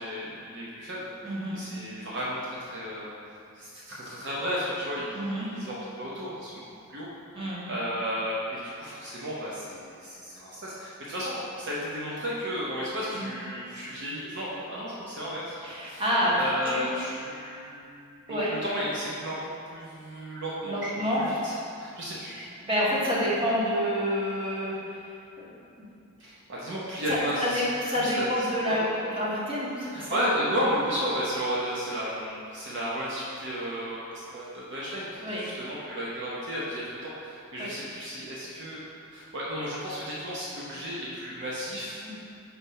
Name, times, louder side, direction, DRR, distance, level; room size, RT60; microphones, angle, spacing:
voice 1, 0.0-1.1 1.5-3.1 3.5-6.6 6.9-7.1 7.7-16.0 16.3-19.4 19.7-22.5 26.2-28.8 29.9-38.8 39.1-42.0, equal, 55° right, -6 dB, 0.9 m, -33 dB
voice 2, 1.2-1.6 5.1-5.5 7.3-7.6 13.1-13.3 15.6-16.3 16.6-16.8 18.3-18.5 20.6-21.5 22.6-25.0 25.4-25.8 27.1-30.2 35.2-35.4 37.6-37.7 42.0-42.1, equal, 25° right, -8 dB, 1.3 m, -28 dB
4.5 x 4.3 x 5.5 m, 2.5 s
head